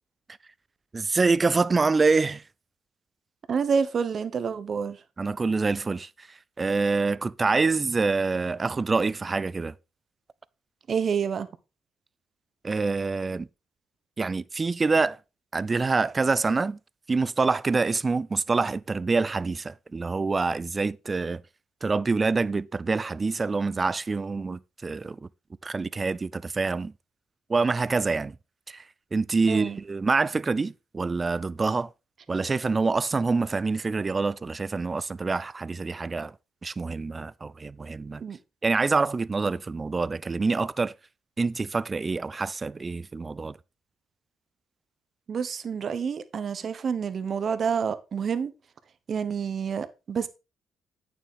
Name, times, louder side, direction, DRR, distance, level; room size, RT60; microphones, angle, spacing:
voice 1, 0.9-2.4 5.2-6.3 6.6-9.7 12.6-13.5 14.2-15.2 15.5-16.8 17.1-21.4 21.8-25.2 25.6-26.9 27.5-28.4 28.7-28.8 29.1-31.9 32.3-36.3 36.6-38.2 38.6-40.9 41.4-43.6, right 4 dB, 25° right, 0.4 m, -26 dB
voice 2, 3.5-5.0 10.9-11.5 29.5-29.8 38.2-38.4 45.3-48.5 49.1-50.3, right 6 dB, 45° right, 1.0 m, -28 dB
8.9 x 7.0 x 3.7 m
cardioid pair, 105°, 0 cm